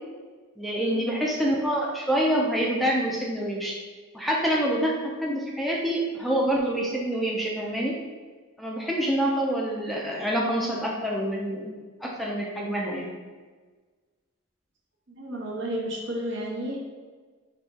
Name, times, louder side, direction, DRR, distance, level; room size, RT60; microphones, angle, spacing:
voice 1, 0.6-3.7 4.1-8.0 8.6-11.7 12.0-13.1, equal, ahead, -3 dB, 0.4 m, -26 dB
voice 2, 15.1-16.9, equal, 60° right, -2 dB, 1.0 m, -32 dB
3.5 x 3.4 x 4.1 m, 1.4 s
head